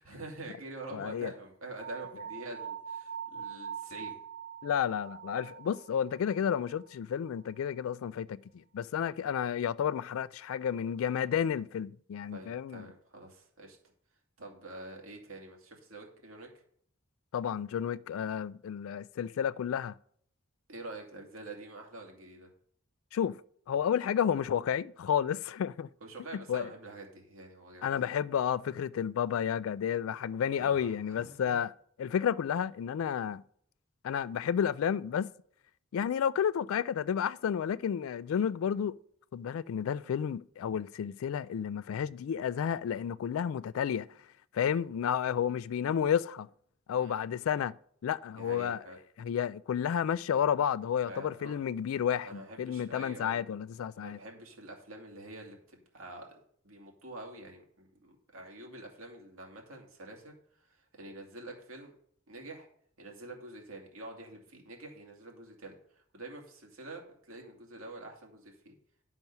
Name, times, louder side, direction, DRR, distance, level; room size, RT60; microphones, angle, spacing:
voice 1, 0.0-4.2 12.3-13.8 14.4-16.5 20.7-22.5 26.0-27.9 30.6-31.6 44.6-44.8 47.0-47.2 48.4-49.0 51.1-51.6 52.2-53.4 53.9-60.3 60.6-61.9 62.3-62.7 63.0-68.7, right 2 dB, 85° right, 2.4 m, -46 dB
voice 2, 0.9-1.3 4.6-12.8 17.3-19.9 23.1-25.9 26.3-26.7 27.8-31.7 32.0-33.4 34.0-35.3 35.9-38.9 39.3-44.1 44.5-46.5 46.9-47.7 48.0-48.8 49.2-54.2, left 8 dB, 80° left, 0.3 m, -31 dB
sound 1, 1.8-6.9, right 8 dB, 55° right, 2.2 m, -43 dB
10.5 x 5.8 x 5.4 m
head